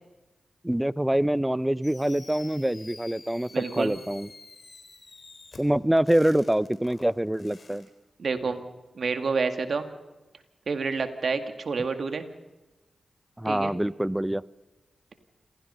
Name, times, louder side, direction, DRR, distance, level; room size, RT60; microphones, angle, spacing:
voice 1, 0.6-4.3 5.6-7.9 13.4-14.4, right 1 dB, 10° right, 19 dB, 0.6 m, -25 dB
Fireworks, 1.8-7.9, left 3 dB, 60° left, 3.9 m, -49 dB
voice 2, 3.5-3.9 8.2-8.6 9.0-9.9 10.7-12.3 13.5-13.7, right 4 dB, 70° right, 7 dB, 2.0 m, -28 dB
28.0 x 16.5 x 5.6 m, 1.1 s
cardioid pair, 40°, 0 cm